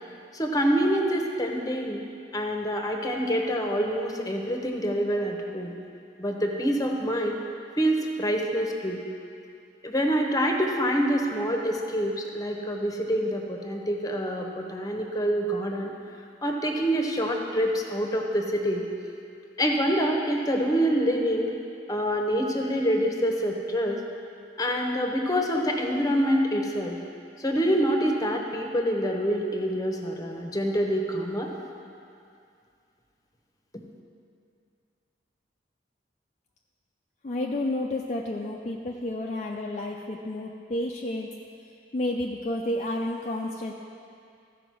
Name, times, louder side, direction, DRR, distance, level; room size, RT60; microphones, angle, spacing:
voice 1, 0.3-2.0 2.3-5.7 6.2-7.4 7.8-9.0 9.8-15.9 16.4-18.9 19.6-21.6 21.9-24.0 24.6-27.0 27.4-31.5, equal, 20° left, 2 dB, 1.0 m, -26 dB
voice 2, 37.2-41.3 41.9-43.7, left 1 dB, 40° left, -1 dB, 0.5 m, -30 dB
14.0 x 5.0 x 6.2 m, 2.5 s
head